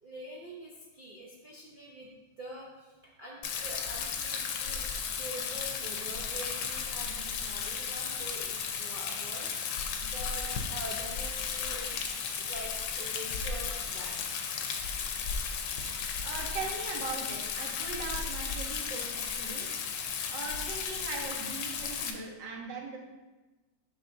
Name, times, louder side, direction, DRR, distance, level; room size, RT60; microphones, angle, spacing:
voice 1, 0.0-2.1 2.4-4.9 5.2-14.4, equal, 45° right, -5 dB, 0.7 m, -45 dB
Rain, 3.4-22.1, left 6 dB, 90° left, 1.3 m, -35 dB
voice 2, 16.2-19.7 20.3-23.0, right 3 dB, 85° right, 0 dB, 1.7 m, -40 dB
6.8 x 6.3 x 2.7 m, 1.2 s
omnidirectional pair, 1.9 m